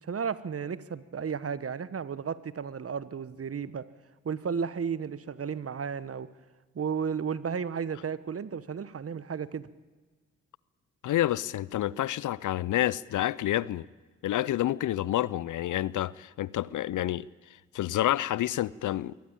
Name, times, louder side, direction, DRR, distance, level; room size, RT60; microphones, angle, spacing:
voice 1, 0.0-3.9 4.2-6.3 6.7-9.7, right 6 dB, 40° right, 1.1 m, -33 dB
voice 2, 11.0-13.9 14.2-17.3 17.7-19.1, left 13 dB, 60° left, 0.6 m, -28 dB
22.5 x 18.0 x 8.8 m
hypercardioid pair, 40°, 35 cm